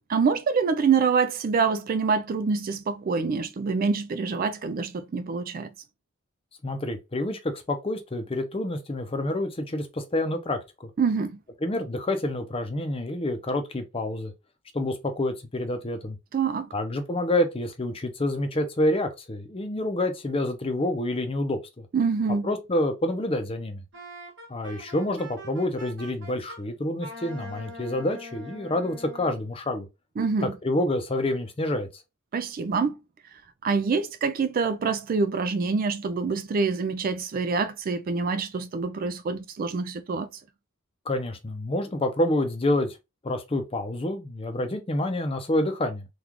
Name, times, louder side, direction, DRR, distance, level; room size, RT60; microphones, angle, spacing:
voice 1, 0.1-5.7 11.0-11.4 16.3-16.7 21.9-22.5 30.2-30.5 32.3-32.9 33.6-40.3, right 5 dB, 40° right, 0.3 m, -26 dB
voice 2, 6.6-10.9 11.6-14.3 14.7-16.2 16.7-21.9 22.4-23.8 24.5-29.9 30.4-32.0 41.1-43.0 43.2-46.1, left 1 dB, 25° left, 0.6 m, -28 dB
Wind instrument woodwind instrument, 23.9-26.6 27.0-29.4, equal, 60° right, 1.2 m, -43 dB
3.6 x 2.4 x 2.9 m
head